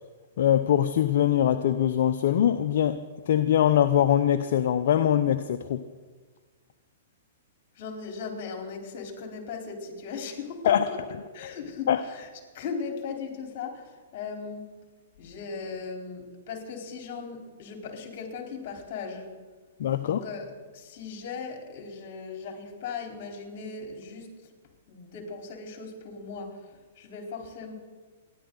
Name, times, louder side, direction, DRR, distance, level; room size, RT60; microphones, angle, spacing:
voice 1, 0.4-5.8 10.7-10.9 11.9-12.0 19.8-20.2, left 10 dB, 65° left, 9 dB, 0.7 m, -23 dB
voice 2, 7.8-11.0 11.3-12.3 12.5-14.7 15.2-19.3 20.0-24.5 24.9-27.7, left 5 dB, 50° left, 2 dB, 4.2 m, -38 dB
28.0 x 11.0 x 4.0 m, 1.4 s
hypercardioid pair, 130°, 0 cm